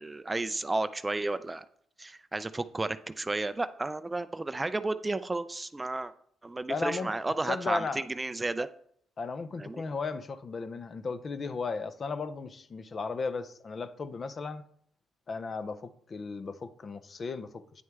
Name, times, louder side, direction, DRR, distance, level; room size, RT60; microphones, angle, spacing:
voice 1, 0.0-1.7 2.0-6.1 6.4-8.7 9.6-9.8, right 2 dB, 20° right, 0.4 m, -32 dB
voice 2, 6.7-8.0 9.2-14.6 15.3-17.8, left 4 dB, 40° left, 0.6 m, -35 dB
9.3 x 6.3 x 3.5 m
cardioid pair, 90°, 0 cm